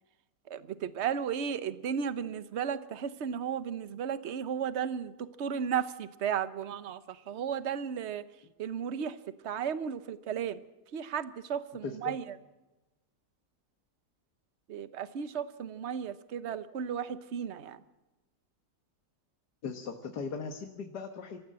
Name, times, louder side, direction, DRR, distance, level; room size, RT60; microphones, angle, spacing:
voice 1, 0.5-5.1 5.4-8.2 8.6-9.2 9.4-10.6 10.9-12.4 14.7-17.8, right 8 dB, 50° right, 13 dB, 1.0 m, -34 dB
voice 2, 11.8-12.1 19.6-21.4, left 5 dB, 75° left, 5 dB, 1.9 m, -38 dB
25.5 x 14.5 x 7.6 m, 1.1 s
omnidirectional pair, 1.8 m